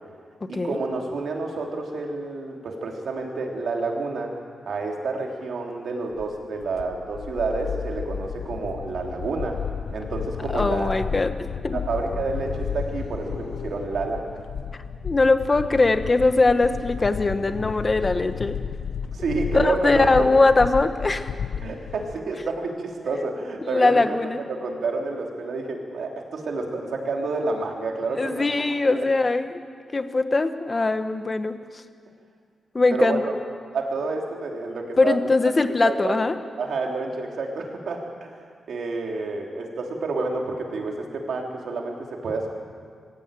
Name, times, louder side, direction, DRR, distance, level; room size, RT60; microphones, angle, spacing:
voice 1, 0.5-4.3 4.6-9.6 9.9-11.0 11.7-14.3 19.1-20.1 21.6-24.2 24.5-28.5 28.9-29.1 32.9-33.3 33.7-35.2 35.8-36.2 36.6-38.3 38.7-42.5, right 3 dB, 65° right, 0 dB, 3.4 m, -29 dB
sound 1, 6.2-22.2, left 7 dB, 75° left, 0.8 m, -33 dB
voice 2, 10.5-11.8 15.0-18.6 19.5-21.3 23.6-24.4 28.1-29.6 29.9-31.5 32.7-33.2 35.0-36.3, left 3 dB, 25° left, 9 dB, 1.0 m, -21 dB
24.5 x 15.5 x 9.1 m, 2.1 s
wide cardioid pair, 170°, 0 cm